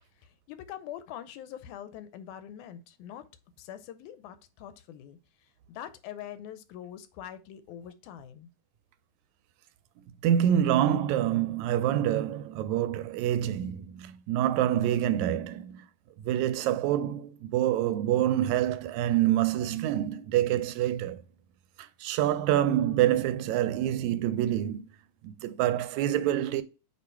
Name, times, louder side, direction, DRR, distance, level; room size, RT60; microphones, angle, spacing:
voice 1, 0.2-3.3 3.6-8.5, left 10 dB, 85° left, 2.1 m, -44 dB
voice 2, 10.2-15.8 16.2-21.2 21.8-24.8 25.2-26.6, right 11 dB, 80° right, 1.8 m, -26 dB
8.4 x 3.1 x 4.4 m
omnidirectional pair, 3.4 m